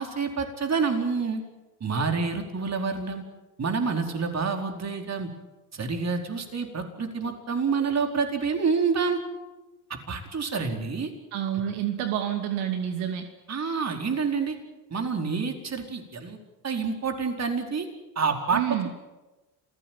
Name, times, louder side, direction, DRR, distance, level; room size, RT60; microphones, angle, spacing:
voice 1, 0.0-1.4 1.8-3.2 3.6-5.3 5.7-9.2 9.9-11.1 13.5-14.6 14.9-16.4 16.6-17.9 18.1-18.9, right 5 dB, 30° right, 4 dB, 4.8 m, -28 dB
voice 2, 11.3-13.2 18.5-18.9, right 10 dB, 70° right, 5 dB, 2.7 m, -28 dB
27.5 x 16.0 x 9.4 m, 1.1 s
supercardioid pair, 85°, 50 cm